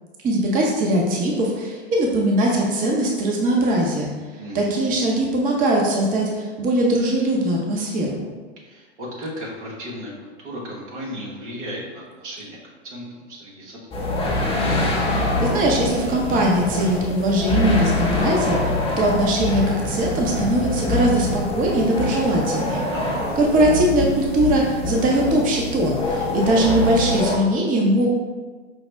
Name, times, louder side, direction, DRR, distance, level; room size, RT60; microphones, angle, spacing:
voice 1, 0.2-4.1 4.5-8.2 15.4-22.8 23.4-28.1, right 1 dB, 25° right, -1 dB, 0.7 m, -21 dB
voice 2, 4.4-4.9 8.6-12.6 12.8-14.1 22.9-23.4, equal, 80° right, -4 dB, 1.4 m, -35 dB
sound 1, 13.9-27.4, left 2 dB, 15° left, 0.7 m, -24 dB
5.4 x 2.1 x 3.3 m, 1.4 s
hypercardioid pair, 100°, 35 cm